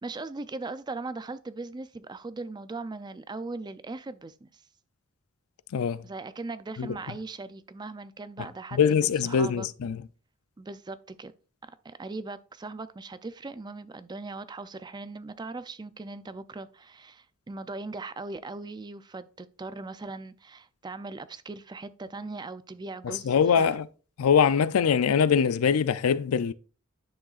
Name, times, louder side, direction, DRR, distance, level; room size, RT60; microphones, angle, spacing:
voice 1, 0.0-4.6 6.0-9.7 10.6-11.3 11.6-23.7, right 3 dB, 20° right, 0.4 m, -39 dB
voice 2, 5.7-6.0 6.8-7.0 8.7-10.0 23.0-23.9 24.2-26.5, left 7 dB, 85° left, 0.4 m, -23 dB
10.0 x 6.3 x 2.4 m
head